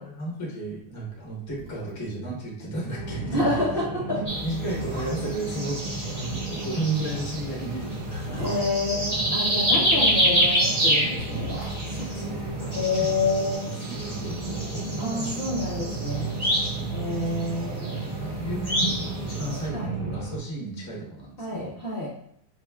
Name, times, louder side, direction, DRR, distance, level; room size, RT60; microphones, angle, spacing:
voice 1, 0.0-3.8 4.2-8.5 11.8-13.1 13.6-15.4 16.7-17.0 18.2-21.7, right 2 dB, 15° left, -4 dB, 0.5 m, -33 dB
sound 1, 1.5-2.1 2.4-2.5 2.9-3.1 3.8-3.9 4.5-5.5 7.0-9.7 10.9-13.2 13.4-13.5, left 1 dB, 85° right, 1.6 m, -40 dB
sound 2, 2.9-20.4, right 3 dB, 65° right, 0.5 m, -34 dB
voice 2, 3.3-4.2 8.4-11.6 12.7-13.7 15.0-16.3 16.9-18.1 19.4-19.9 21.4-22.1, left 2 dB, 50° left, -6 dB, 0.7 m, -28 dB
sound 3, 4.3-19.7, equal, 30° right, 0.8 m, -28 dB
4.9 x 2.2 x 2.2 m, 0.69 s
omnidirectional pair, 1.6 m